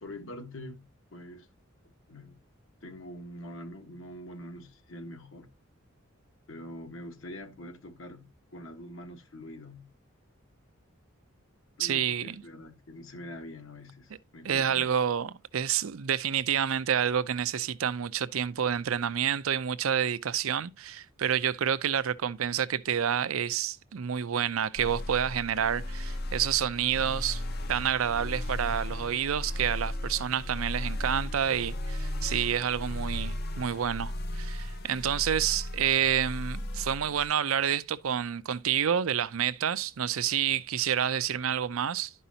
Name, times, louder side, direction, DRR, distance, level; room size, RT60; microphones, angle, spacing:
voice 1, 0.0-1.5 2.1-2.4 2.8-5.5 6.5-9.9 11.8-14.9, left 1 dB, 65° left, 1.4 m, -44 dB
voice 2, 11.8-12.4 14.4-27.4 27.7-42.1, right 8 dB, 85° right, 0.5 m, -29 dB
sound 1, 24.8-37.3, left 1 dB, 50° left, 0.7 m, -35 dB
11.5 x 5.5 x 2.8 m
head